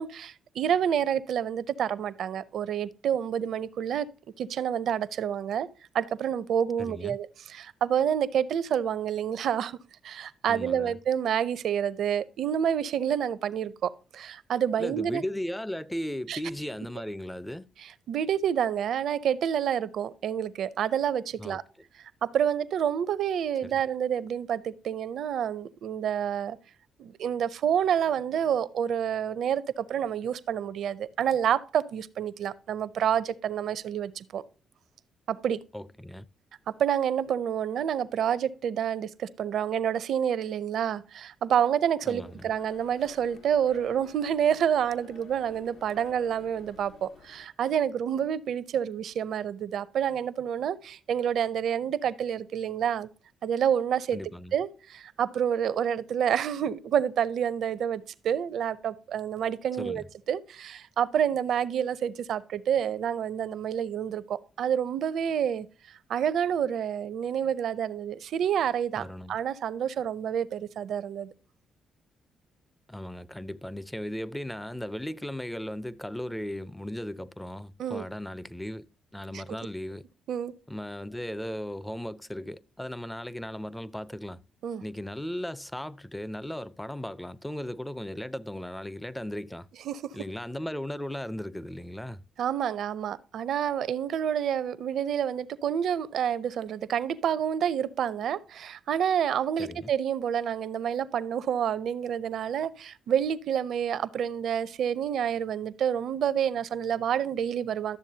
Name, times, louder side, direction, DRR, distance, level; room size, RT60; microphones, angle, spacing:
voice 1, 0.0-4.1 4.4-5.7 5.9-9.8 10.0-15.2 16.3-16.4 17.8-21.6 22.2-26.6 27.0-34.4 35.3-35.6 36.8-53.1 53.4-54.2 54.5-65.7 66.1-71.3 77.8-78.0 79.3-79.4 80.3-80.5 84.6-84.8 89.9-90.1 92.4-108.0, right 9 dB, 70° right, 0.5 m, -28 dB
voice 2, 6.8-7.2 10.5-10.9 14.8-17.7 21.4-21.6 23.6-23.8 35.7-36.3 42.1-42.5 54.1-54.5 59.8-60.1 69.0-69.4 72.9-78.9 79.1-80.0 80.7-84.4 84.8-89.7 90.1-92.2 99.6-99.9, left 1 dB, 5° left, 0.4 m, -36 dB
sound 1, 42.1-47.5, left 4 dB, 75° left, 1.1 m, -53 dB
12.0 x 7.1 x 2.8 m
cardioid pair, 90°, 0 cm